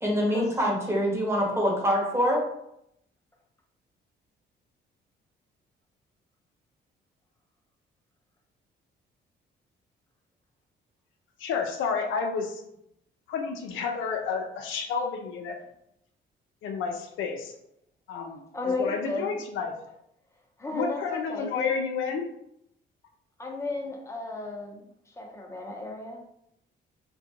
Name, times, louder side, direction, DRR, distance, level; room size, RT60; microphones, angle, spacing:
voice 1, 0.0-2.4, equal, 15° right, -2 dB, 0.8 m, -25 dB
voice 2, 1.9-2.2 18.5-19.4 20.6-21.7 23.4-26.2, left 3 dB, 15° left, 0 dB, 0.6 m, -34 dB
voice 3, 11.4-12.6 13.3-15.6 16.6-17.5 18.1-18.4 18.8-19.7 20.7-22.3, left 5 dB, 80° left, 4 dB, 0.4 m, -30 dB
2.5 x 2.2 x 2.8 m, 0.77 s
cardioid pair, 90°, 20 cm